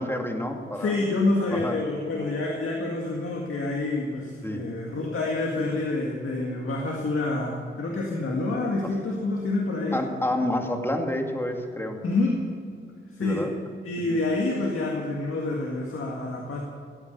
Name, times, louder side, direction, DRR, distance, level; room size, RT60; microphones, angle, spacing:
voice 1, 0.0-1.0 1.5-1.8 4.4-4.7 9.9-12.0 13.2-13.5 14.1-14.2, left 1 dB, 10° left, 3 dB, 2.3 m, -29 dB
voice 2, 0.7-10.0 12.0-12.4 13.2-13.5 13.8-16.6, left 2 dB, 80° left, -1 dB, 2.0 m, -27 dB
16.5 x 9.0 x 6.9 m, 2.2 s
cardioid pair, 60°, 21 cm